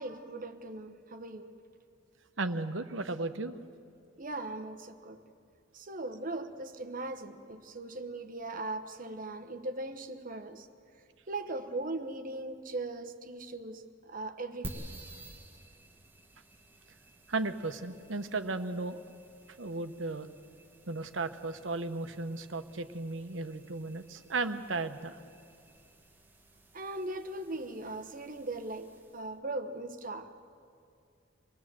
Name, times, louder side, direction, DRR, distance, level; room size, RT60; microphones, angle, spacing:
voice 1, 0.0-1.5 4.2-5.2 5.7-10.7 11.3-14.9 26.7-30.4, right 2 dB, 45° right, 1.2 m, -39 dB
voice 2, 2.4-3.5 17.3-19.0 19.6-20.3 20.9-25.2, right 3 dB, 80° right, 1.1 m, -35 dB
sound 1, 14.6-29.4, right 1 dB, 10° right, 1.4 m, -52 dB
26.0 x 19.0 x 7.6 m
head